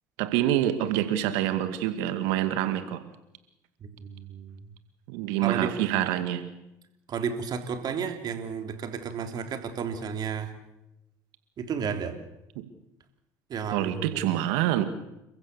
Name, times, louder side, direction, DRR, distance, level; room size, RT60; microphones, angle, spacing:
voice 1, 0.2-3.0 5.1-6.4 13.7-14.8, right 12 dB, 75° right, 10 dB, 2.2 m, -26 dB
voice 2, 3.8-4.7 5.4-5.7 7.1-10.5 11.6-12.2 13.5-14.4, right 6 dB, 50° right, 7 dB, 3.4 m, -32 dB
30.0 x 15.0 x 7.0 m, 0.90 s
hypercardioid pair, 65°, 9 cm